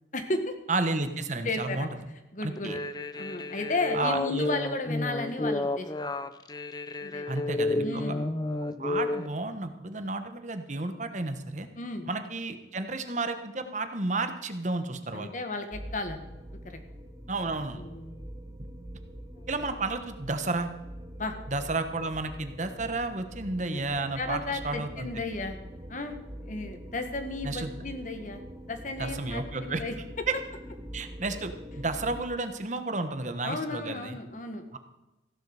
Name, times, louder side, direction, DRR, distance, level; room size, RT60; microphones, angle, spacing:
voice 1, 0.1-0.5 1.4-1.9 2.3-2.7 3.1-6.3 7.0-7.3 7.7-8.3 11.8-12.1 15.1-16.3 16.6-16.8 17.7-18.2 19.4-19.5 21.2-21.3 23.6-23.9 24.2-25.6 25.9-26.1 26.4-28.4 28.7-30.0 33.4-34.7, left 2 dB, 45° left, 7 dB, 1.7 m, -34 dB
voice 2, 0.7-2.0 2.4-2.8 3.9-4.5 7.3-8.0 8.8-11.7 12.1-15.3 17.3-17.8 18.6-18.7 19.5-20.7 21.5-25.1 27.4-27.7 29.0-29.8 30.3-30.4 30.9-34.2 34.7-34.8, right 3 dB, 40° right, 8 dB, 1.2 m, -32 dB
sound 1, 2.6-9.3, left 2 dB, 25° left, 0.6 m, -31 dB
sound 2, 15.7-32.2, equal, 20° right, 1.6 m, -44 dB
15.5 x 11.0 x 4.9 m, 1.0 s
head